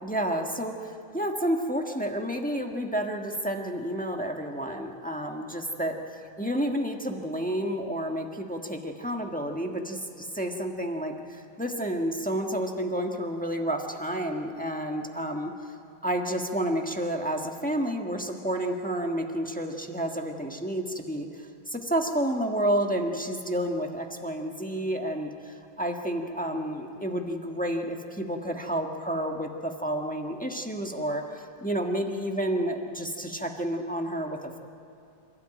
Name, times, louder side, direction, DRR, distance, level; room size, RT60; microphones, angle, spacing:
voice 1, 0.0-15.7 16.0-34.6, right 1 dB, 5° left, 2 dB, 1.0 m, -30 dB
26.5 x 13.0 x 9.1 m, 2.7 s
omnidirectional pair, 2.2 m